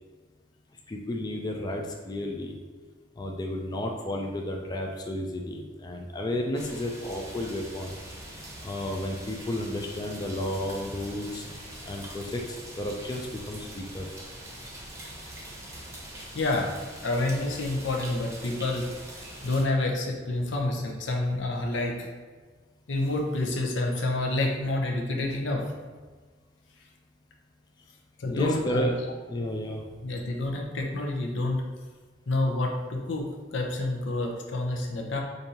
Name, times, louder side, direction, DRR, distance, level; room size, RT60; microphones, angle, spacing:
voice 1, 0.9-2.6 3.2-8.0 8.6-11.4 11.8-14.1 28.3-28.9 29.3-29.8, left 1 dB, 20° left, 1 dB, 0.3 m, -32 dB
sound 1, 6.5-19.6, right 1 dB, 15° right, 0.7 m, -43 dB
voice 2, 16.3-16.7 17.0-18.9 19.4-22.1 22.9-25.6 28.2-28.9 30.0-31.6 32.3-33.3 33.5-35.2, left 2 dB, 80° left, 1 dB, 0.6 m, -28 dB
5.1 x 2.6 x 2.8 m, 1.4 s
head